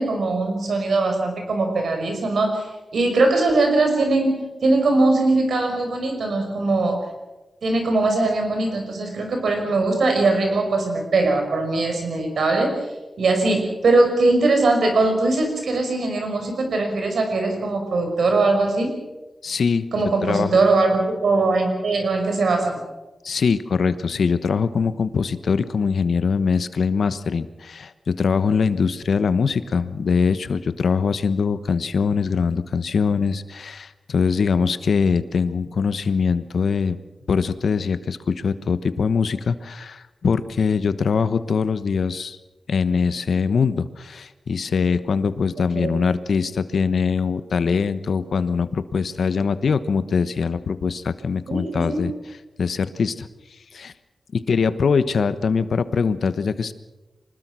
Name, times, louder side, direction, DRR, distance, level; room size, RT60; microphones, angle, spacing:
voice 1, 0.0-7.0 7.6-12.8 13.2-18.9 19.9-22.8 45.7-45.9 51.5-52.0, right 2 dB, 85° right, 4 dB, 5.6 m, -21 dB
voice 2, 19.4-19.9 20.3-20.6 23.2-37.0 37.3-42.4 42.7-52.1 52.6-53.3 53.7-53.9 54.3-56.7, left 5 dB, 75° left, 13 dB, 1.1 m, -22 dB
25.0 x 20.0 x 6.2 m, 1.1 s
wide cardioid pair, 95°, 0 cm